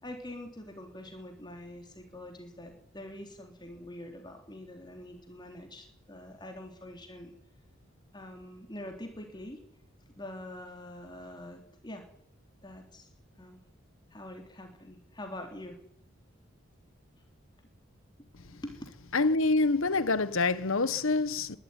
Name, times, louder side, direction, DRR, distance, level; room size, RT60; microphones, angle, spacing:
voice 1, 0.0-7.3 8.1-9.6 10.2-12.0 12.6-13.1 13.4-13.6 14.1-15.8 18.6-18.8, left 1 dB, 20° left, 3.3 m, -45 dB
voice 2, 19.1-21.6, left 3 dB, 75° left, 1.2 m, -26 dB
22.5 x 12.5 x 9.5 m
head